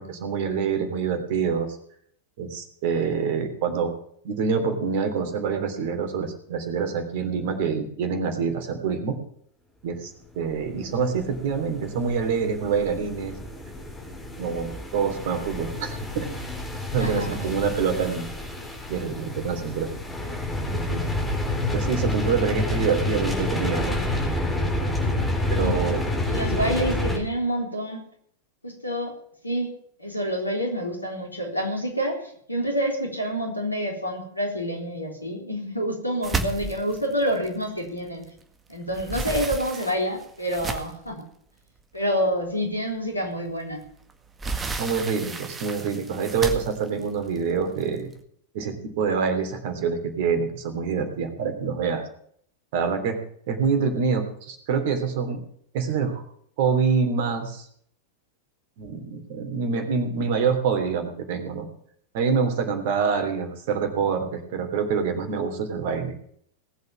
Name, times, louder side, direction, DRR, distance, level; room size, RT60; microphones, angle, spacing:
voice 1, 0.0-1.8 2.4-3.9 4.2-9.2 9.8-13.4 14.4-16.3 16.9-18.3 18.9-19.9 20.7-21.0 21.7-24.0 25.0-25.1 25.5-26.0 44.8-48.1 48.5-52.0 52.7-53.2 53.5-55.4 55.7-56.2 56.6-57.7 58.8-61.7 62.1-66.1, right 6 dB, 50° right, 7 dB, 3.2 m, -26 dB
sound 1, 10.7-27.2, left 1 dB, 10° left, 4.0 m, -29 dB
voice 2, 17.0-17.4 25.6-25.9 26.3-28.0 28.6-29.1 29.4-29.7 30.0-38.3 38.7-41.2 41.9-43.8, equal, 85° left, 2 dB, 3.9 m, -28 dB
sound 2, 36.2-38.4 38.7-41.1 41.8-41.9 42.3-42.4 43.8-48.1, right 3 dB, 15° right, 1.8 m, -33 dB
19.0 x 8.2 x 7.4 m, 0.63 s
figure-of-eight pair, 90°, 0 cm